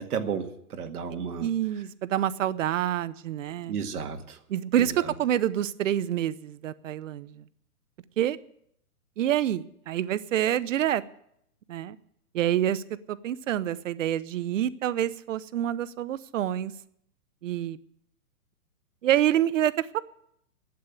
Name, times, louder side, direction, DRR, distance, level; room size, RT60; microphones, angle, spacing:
voice 1, 0.0-1.8 3.7-4.4 4.8-5.1, right 6 dB, 80° right, 6 dB, 2.0 m, -33 dB
voice 2, 1.4-3.8 4.5-4.9 5.2-7.4 8.2-8.4 9.2-11.0 11.7-12.0 12.3-12.8 13.1-16.7 17.4-17.8 19.0-20.0, right 11 dB, 55° right, 16 dB, 0.8 m, -27 dB
11.5 x 8.7 x 9.6 m, 0.73 s
hypercardioid pair, 160°, 45 cm